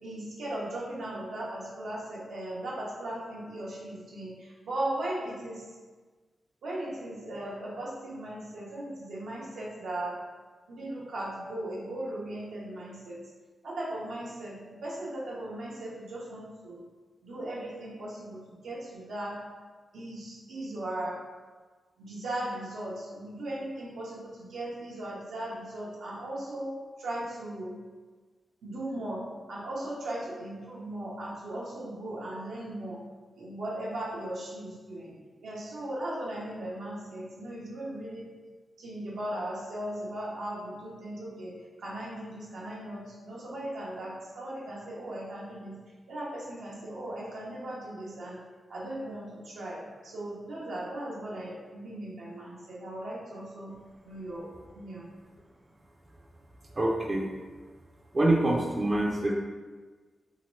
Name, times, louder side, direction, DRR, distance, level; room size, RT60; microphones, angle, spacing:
voice 1, 0.0-5.7 6.6-10.2 10.7-13.2 13.6-16.8 17.2-19.5 19.9-21.2 22.0-27.8 28.6-33.0 33.4-35.1 35.4-38.3 38.8-45.8 46.1-48.4 48.7-53.7 54.0-54.5 54.7-55.1, right 1 dB, 85° right, -5 dB, 0.8 m, -37 dB
voice 2, 56.8-57.3 58.1-59.3, right 1 dB, 35° right, -2 dB, 0.5 m, -25 dB
3.0 x 2.8 x 3.1 m, 1.4 s
wide cardioid pair, 100°, 0 cm